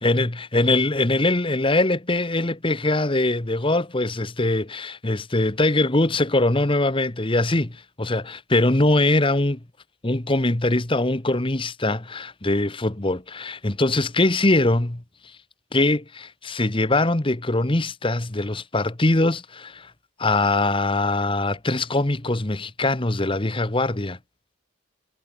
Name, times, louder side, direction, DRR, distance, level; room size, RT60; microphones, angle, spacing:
voice 1, 0.0-9.6 10.0-15.0 15.7-19.9 20.2-24.2, left 2 dB, 25° left, 1.2 m, -22 dB
head